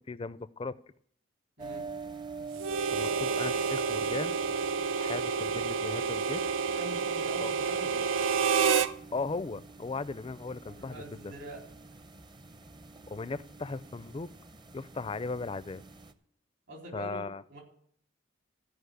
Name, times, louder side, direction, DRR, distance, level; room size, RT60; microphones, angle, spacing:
voice 1, 0.1-0.7 2.9-4.4 5.0-6.4 7.4-7.5 9.1-11.2 13.1-14.3 14.7-15.8 16.9-17.4, left 3 dB, 30° left, 16 dB, 0.4 m, -37 dB
sound 1, 1.6-16.1, right 4 dB, 25° right, 0.6 m, -46 dB
Harmonica, 2.6-8.9, right 5 dB, 90° right, 0.5 m, -29 dB
voice 2, 6.8-8.0 10.6-11.6 16.7-17.2 17.5-17.6, right 1 dB, 70° right, 0 dB, 4.0 m, -44 dB
14.0 x 5.3 x 7.9 m, 0.63 s
head